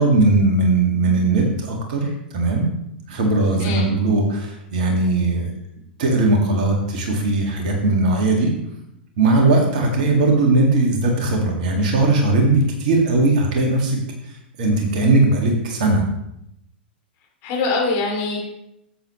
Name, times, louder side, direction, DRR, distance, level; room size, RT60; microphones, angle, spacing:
voice 1, 0.0-2.7 3.1-5.5 6.0-8.5 9.2-14.0 14.6-16.0, right 2 dB, 45° right, 1 dB, 2.1 m, -18 dB
voice 2, 17.4-18.5, left 3 dB, 35° left, -1 dB, 2.8 m, -23 dB
10.0 x 8.0 x 3.2 m, 0.79 s
figure-of-eight pair, 100°, 6 cm